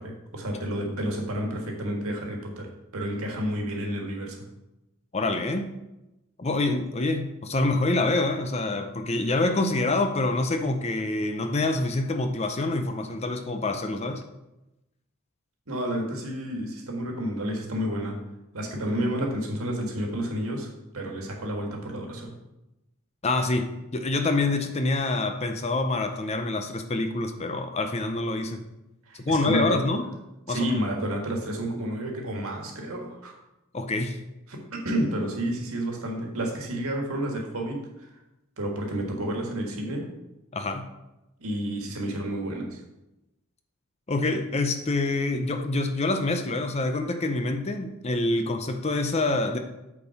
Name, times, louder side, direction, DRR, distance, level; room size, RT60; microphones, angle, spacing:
voice 1, 0.0-2.7 2.9-4.4 15.7-18.2 18.5-22.3 29.1-29.8 30.5-33.3 34.5-37.8 38.6-40.0 41.4-42.8, right 1 dB, 75° right, 1 dB, 1.7 m, -30 dB
voice 2, 5.1-5.7 6.4-14.2 23.2-28.6 29.1-30.0 30.5-30.8 33.7-34.2 40.5-40.8 44.1-49.6, left 2 dB, 30° left, 6 dB, 0.5 m, -26 dB
8.4 x 4.4 x 5.7 m, 0.95 s
head